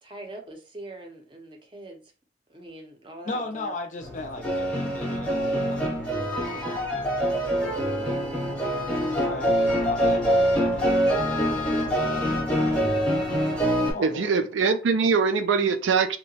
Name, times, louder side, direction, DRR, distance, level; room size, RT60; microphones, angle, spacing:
voice 1, 0.0-2.0 2.5-3.7 7.9-8.3, right 1 dB, 25° right, 0.6 m, -42 dB
voice 2, 3.2-5.9 8.7-11.0 11.9-13.4 13.9-14.5, left 2 dB, 40° left, 0.5 m, -37 dB
sound 1, 4.0-13.9, equal, 5° left, 0.8 m, -25 dB
voice 3, 14.0-16.2, right 5 dB, 80° right, 0.4 m, -22 dB
2.8 x 2.1 x 2.7 m
head